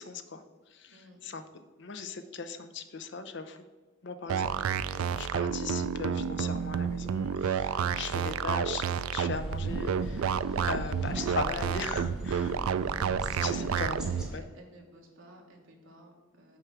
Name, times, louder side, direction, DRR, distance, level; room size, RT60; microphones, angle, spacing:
voice 1, 0.0-1.4 1.8-3.6 4.0-4.6 4.9-12.6 13.4-14.0 14.3-14.6, left 4 dB, 55° left, 9 dB, 0.6 m, -39 dB
voice 2, 0.9-1.2 10.6-10.8 13.4-16.6, right 1 dB, 70° right, 1 dB, 1.6 m, -52 dB
sound 1, 4.3-14.3, right 7 dB, 85° right, 0.4 m, -30 dB
sound 2, 9.3-14.4, equal, 5° right, 0.8 m, -40 dB
6.7 x 4.7 x 6.0 m, 1.4 s
head